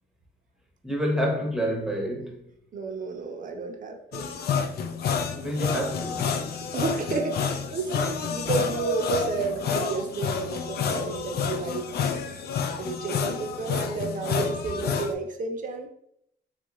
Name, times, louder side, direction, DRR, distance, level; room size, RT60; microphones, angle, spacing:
voice 1, 0.8-2.4 5.4-6.3, equal, ahead, 0.8 m, -28 dB
voice 2, 2.7-4.3 6.7-11.9 12.8-15.9, right 4 dB, 40° right, 0.6 m, -31 dB
sound 1, 4.1-15.1, left 6 dB, 55° left, 0.4 m, -29 dB
3.2 x 2.4 x 2.9 m
cardioid pair, 90°, 20 cm